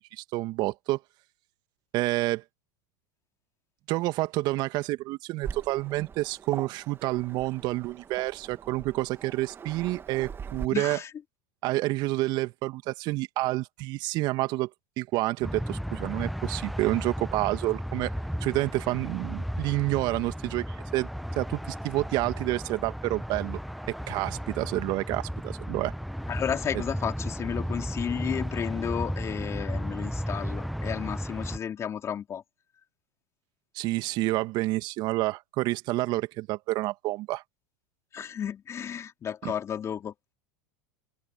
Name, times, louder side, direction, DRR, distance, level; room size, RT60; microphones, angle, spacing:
voice 1, 0.2-1.0 1.9-2.4 3.9-11.0 11.6-14.7 15.0-18.1 18.4-21.1 21.4-23.6 23.9-25.9 33.7-37.4 39.4-39.5, right 19 dB, 50° right, 2.1 m, -29 dB
Waves surf, 5.4-10.7, right 6 dB, 25° right, 1.8 m, -42 dB
voice 2, 10.7-11.1 26.3-32.4 38.1-40.1, left 8 dB, 30° left, 2.9 m, -33 dB
sound 1, 15.4-31.6, equal, ahead, 0.8 m, -34 dB
open air
hypercardioid pair, 90°, 9 cm